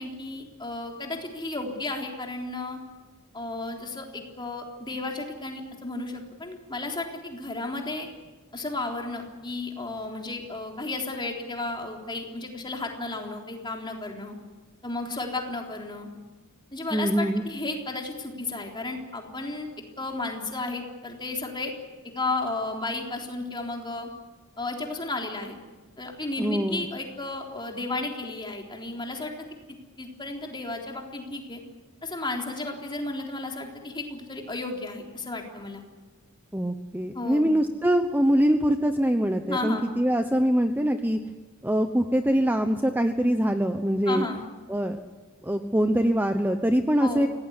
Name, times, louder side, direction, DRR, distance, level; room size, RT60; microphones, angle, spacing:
voice 1, 0.0-2.8 3.3-8.1 8.5-14.4 14.8-16.1 16.7-19.7 20.0-21.7 22.1-24.1 24.6-25.6 26.0-29.3 29.7-31.6 32.0-35.8 37.1-37.5 39.5-39.9 44.1-44.5 47.0-47.3, left 2 dB, 20° left, 1 dB, 3.6 m, -33 dB
voice 2, 16.9-17.4 26.4-26.9 36.5-41.2 41.6-44.2 44.7-45.0 45.4-47.3, equal, 10° right, 7 dB, 0.9 m, -23 dB
26.0 x 18.0 x 9.7 m, 1.3 s
head